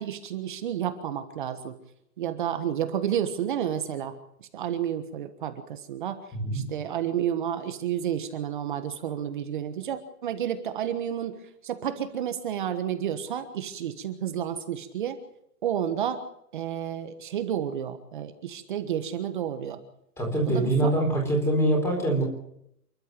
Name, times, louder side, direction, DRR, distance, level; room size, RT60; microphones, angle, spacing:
voice 1, 0.0-1.7 2.2-4.1 4.4-6.2 6.5-15.2 15.6-16.2 16.5-19.8 20.5-20.9, right 9 dB, 30° right, 9 dB, 1.4 m, -31 dB
voice 2, 20.2-22.2, right 1 dB, 5° left, 1 dB, 4.2 m, -24 dB
28.5 x 12.5 x 7.9 m, 0.75 s
hypercardioid pair, 170°, 48 cm